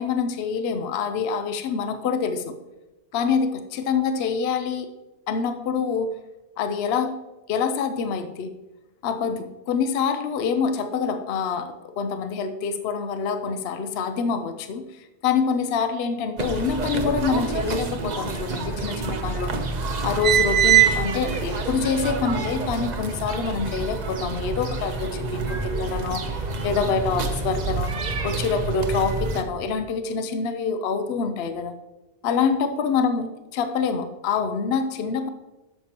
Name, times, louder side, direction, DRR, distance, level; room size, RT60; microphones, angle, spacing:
voice 1, 0.0-2.6 3.1-4.9 5.3-6.2 6.6-7.2 7.5-8.5 9.0-19.5 20.0-31.7 32.2-35.3, left 5 dB, 65° left, 9 dB, 0.8 m, -26 dB
sound 1, 16.4-29.4, right 6 dB, 40° right, 0.8 m, -26 dB
12.5 x 6.7 x 2.9 m, 1.1 s
omnidirectional pair, 1.2 m